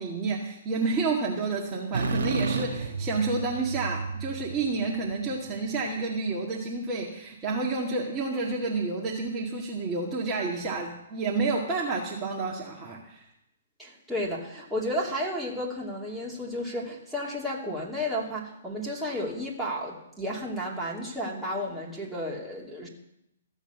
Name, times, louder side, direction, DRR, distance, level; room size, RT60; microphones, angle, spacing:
voice 1, 0.0-13.3, right 3 dB, 20° right, -3 dB, 2.0 m, -30 dB
sound 1, 1.9-5.7, right 4 dB, 70° right, 1.9 m, -32 dB
voice 2, 13.8-22.9, equal, 5° right, -5 dB, 2.8 m, -32 dB
14.5 x 7.3 x 7.0 m, 0.82 s
hypercardioid pair, 130°, 0 cm